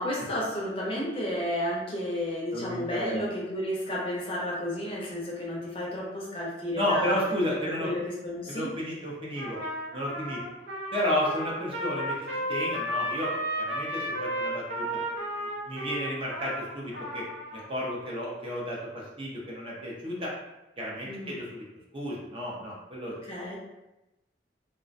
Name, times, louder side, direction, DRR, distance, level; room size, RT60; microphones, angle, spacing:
voice 1, 0.0-7.2 7.8-8.7 21.0-21.4 23.3-23.6, left 1 dB, 30° left, -4 dB, 0.5 m, -32 dB
voice 2, 2.5-3.2 6.8-7.9 8.5-9.6 9.9-10.4 10.9-13.3 13.6-17.2 17.5-20.3 20.8-21.6 21.9-23.1, equal, 30° right, -4 dB, 0.5 m, -32 dB
Trumpet, 9.4-17.7, equal, 80° right, 0.6 m, -33 dB
2.4 x 2.1 x 2.5 m, 0.96 s
head